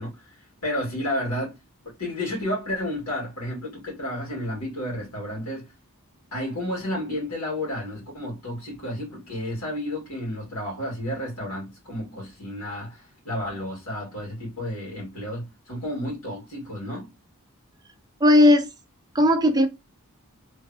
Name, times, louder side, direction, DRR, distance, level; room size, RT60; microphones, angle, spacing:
voice 1, 0.0-1.6 1.8-5.7 6.3-17.1, left 1 dB, 85° left, 1.9 m, -31 dB
voice 2, 18.2-18.7 19.1-19.7, left 1 dB, 15° right, 0.5 m, -16 dB
3.1 x 2.8 x 2.2 m
head